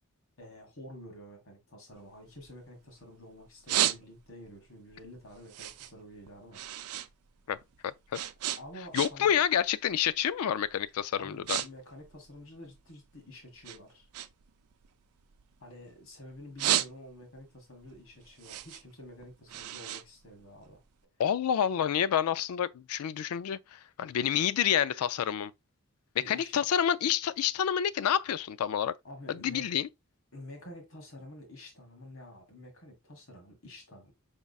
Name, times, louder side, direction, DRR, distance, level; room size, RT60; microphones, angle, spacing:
voice 1, 0.4-6.6 8.6-9.3 11.2-14.1 15.6-20.8 26.2-26.7 29.0-29.8 30.3-34.1, left 1 dB, 65° left, 1.7 m, -49 dB
sound 1, 1.9-3.0 3.4-4.5 4.9-7.1 7.4-9.4 9.7-10.0 10.6-10.8 11.1-11.7 11.9-13.2 13.6-16.0 16.3-17.4 17.8-20.9, right 12 dB, 90° right, 0.4 m, -33 dB
voice 2, 7.8-8.2 8.9-11.6 21.2-25.5 26.3-28.9 29.3-29.9, left 9 dB, 85° left, 0.3 m, -28 dB
5.3 x 3.6 x 2.3 m
head